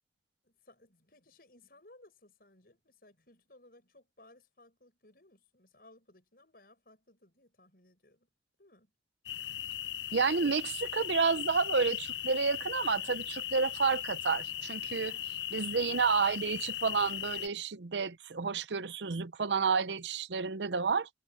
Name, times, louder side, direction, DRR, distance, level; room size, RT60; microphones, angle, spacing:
voice 1, 0.4-8.3 8.6-8.9 15.0-15.3, left 2 dB, 55° left, 7.6 m, -61 dB
sound 1, 9.3-17.5, left 12 dB, 85° left, 0.5 m, -38 dB
voice 2, 10.1-15.1 15.5-21.1, right 5 dB, 85° right, 0.7 m, -30 dB
head